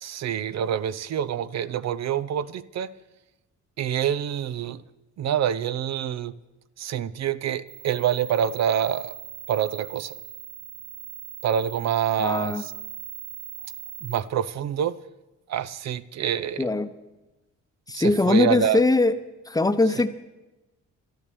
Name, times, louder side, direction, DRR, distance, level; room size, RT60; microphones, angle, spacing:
voice 1, 0.0-2.9 3.8-4.8 5.2-6.3 6.8-9.1 9.5-10.2 11.4-12.7 14.0-15.0 15.5-16.7 17.9-18.8, right 9 dB, 60° right, 17 dB, 0.7 m, -26 dB
sound 1, 7.7-14.2, right 10 dB, 10° right, 1.5 m, -40 dB
voice 2, 12.2-12.6 16.6-16.9 17.9-19.2 19.5-20.1, left 2 dB, 10° left, 10 dB, 0.9 m, -21 dB
12.0 x 12.0 x 7.0 m, 1.0 s
cardioid pair, 90°, 30 cm